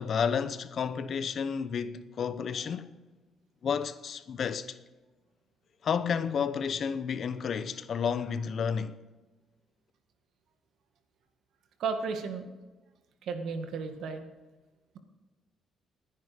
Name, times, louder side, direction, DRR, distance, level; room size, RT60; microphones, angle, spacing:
voice 1, 0.0-2.9 3.6-4.8 5.8-9.0, left 6 dB, 55° left, 0.9 m, -31 dB
voice 2, 11.8-12.4 13.2-14.3, right 5 dB, 75° right, 1.9 m, -33 dB
19.5 x 10.5 x 5.2 m
cardioid pair, 90°, 0 cm